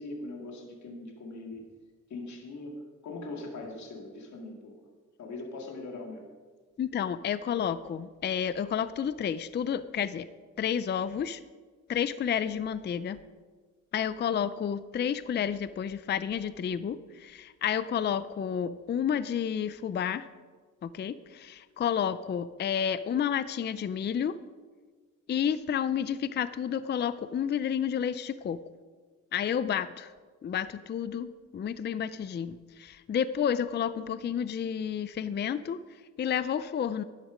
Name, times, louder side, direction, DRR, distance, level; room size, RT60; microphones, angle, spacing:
voice 1, 0.0-1.7 2.1-2.7 3.0-4.7 5.2-6.3, left 2 dB, 60° left, 1 dB, 2.2 m, -41 dB
voice 2, 6.8-10.3 10.6-11.4 11.9-13.2 13.9-20.3 20.8-24.4 25.3-28.6 29.3-30.1 30.4-37.0, left 8 dB, 35° left, 14 dB, 0.4 m, -30 dB
12.0 x 11.0 x 5.1 m, 1.5 s
cardioid pair, 110°, 31 cm